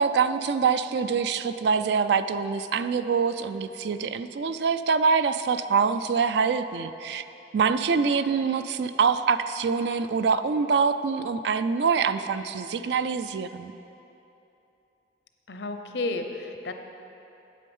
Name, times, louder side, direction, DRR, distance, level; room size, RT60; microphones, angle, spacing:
voice 1, 0.0-7.2 7.5-13.7, right 5 dB, 70° right, 11 dB, 0.4 m, -25 dB
voice 2, 15.5-16.7, left 2 dB, 75° left, 6 dB, 0.7 m, -32 dB
8.6 x 8.4 x 5.4 m, 3.0 s
head